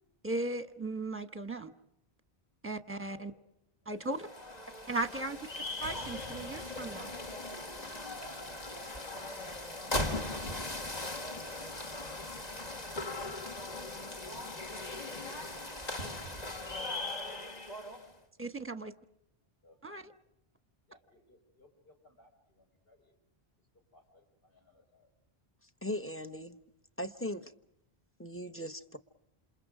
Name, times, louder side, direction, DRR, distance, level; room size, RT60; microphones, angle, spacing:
voice 1, 0.2-1.7 2.6-3.3 3.9-4.2 4.9-5.4 5.8-7.1 18.4-18.9 19.8-20.0, right 2 dB, 15° right, 9 dB, 1.1 m, -36 dB
sound 1, 4.0-18.1, left 2 dB, 40° left, 1.9 m, -39 dB
voice 2, 9.7-10.0 17.8-18.5 19.6-20.1 20.9-23.1 23.9-25.1, left 2 dB, 70° left, 2 dB, 5.4 m, -63 dB
voice 3, 25.6-26.6 27.0-27.5 28.2-29.0, left 1 dB, 15° left, 9 dB, 0.9 m, -39 dB
28.0 x 28.0 x 5.0 m, 0.80 s
omnidirectional pair, 1.0 m